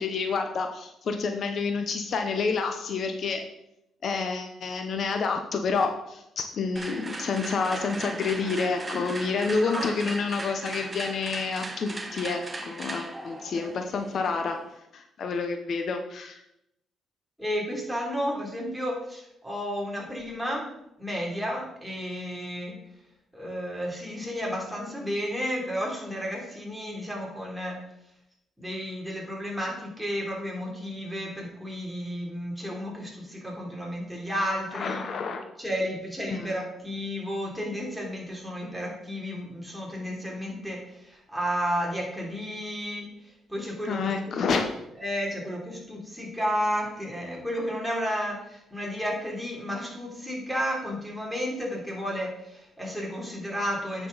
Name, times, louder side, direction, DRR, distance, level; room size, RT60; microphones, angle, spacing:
voice 1, 0.0-3.4 4.0-14.6 14.9-16.4 34.7-35.4 36.3-36.6 43.9-44.7, left 4 dB, 60° left, 5 dB, 0.9 m, -29 dB
sound 1, 6.8-14.7, right 2 dB, 15° right, 1.1 m, -38 dB
voice 2, 9.5-9.8 13.6-13.7 17.4-20.7 21.0-22.8 23.3-27.8 28.6-35.0 35.6-43.1 43.5-44.4 45.0-54.1, equal, ahead, -3 dB, 3.2 m, -32 dB
9.5 x 6.0 x 4.0 m, 0.81 s
cardioid pair, 90°, 0 cm